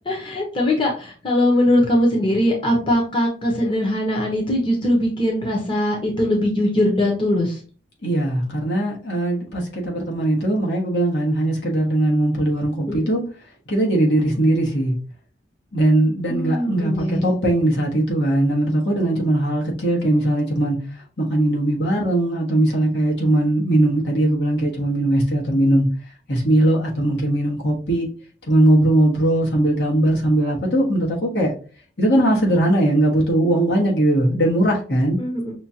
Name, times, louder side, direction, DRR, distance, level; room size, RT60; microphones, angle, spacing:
voice 1, 0.0-7.6 12.9-13.1 16.3-17.3 35.2-35.5, left 1 dB, 25° left, 1.0 m, -21 dB
voice 2, 8.0-13.2 13.7-14.9 15.7-20.8 21.2-25.9 26.3-28.0 28.5-31.5 32.0-35.2, right 1 dB, 70° left, 1.5 m, -19 dB
6.0 x 2.4 x 2.8 m
head